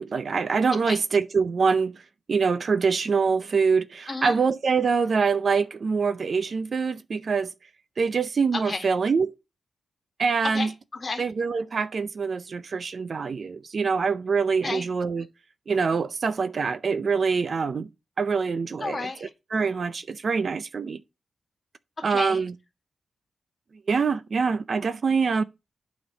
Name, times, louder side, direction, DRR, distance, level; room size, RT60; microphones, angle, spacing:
voice 1, 0.0-1.9 2.3-7.5 8.0-9.3 10.2-10.7 11.2-15.2 15.7-17.9 18.2-21.0 22.0-22.5 23.9-25.4, right 5 dB, 50° right, 0.5 m, -25 dB
voice 2, 4.1-4.4 8.5-8.9 10.4-11.3 14.6-14.9 15.2-15.3 18.8-19.3 22.1-22.4, left 3 dB, 35° left, 2.0 m, -32 dB
8.9 x 5.1 x 5.2 m
wide cardioid pair, 120°, 0 cm